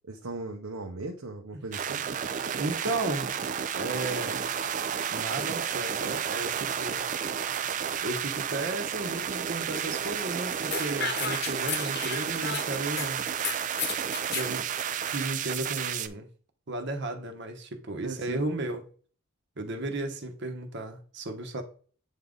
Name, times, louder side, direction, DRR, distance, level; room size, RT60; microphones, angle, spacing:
voice 1, 0.0-2.0 18.0-18.5, right 2 dB, 85° right, 0.8 m, -38 dB
sound 1, 1.7-16.1, right 8 dB, 35° right, 0.4 m, -31 dB
voice 2, 2.6-3.3 3.7-4.4 5.1-7.1 8.0-13.2 14.3-14.7 15.1-16.3 16.7-18.9 19.6-21.6, right 2 dB, 55° right, 1.0 m, -34 dB
sound 2, 10.7-13.1 13.4-14.5, left 6 dB, 50° left, 0.9 m, -33 dB
8.3 x 3.6 x 3.8 m
head